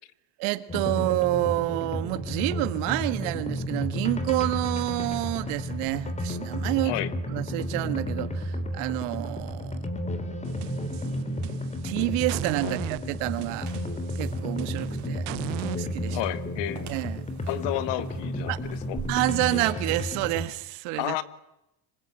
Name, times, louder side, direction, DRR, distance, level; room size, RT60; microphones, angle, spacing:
voice 1, 0.4-6.9 7.3-9.9 11.8-13.7 14.2-15.3 15.8-16.2 16.9-17.3 18.5-18.6 19.1-21.2, right 20 dB, 75° right, 1.9 m, -28 dB
sound 1, 0.7-20.5, left 1 dB, 15° left, 3.3 m, -32 dB
sound 2, 10.4-11.9 12.3-15.8, right 24 dB, 90° right, 0.9 m, -38 dB
sound 3, 13.4-19.1, right 8 dB, 35° right, 4.9 m, -47 dB
voice 2, 16.1-16.9 17.5-19.0 21.0-21.2, left 15 dB, 60° left, 1.7 m, -31 dB
26.0 x 24.5 x 9.1 m
cardioid pair, 140°, 48 cm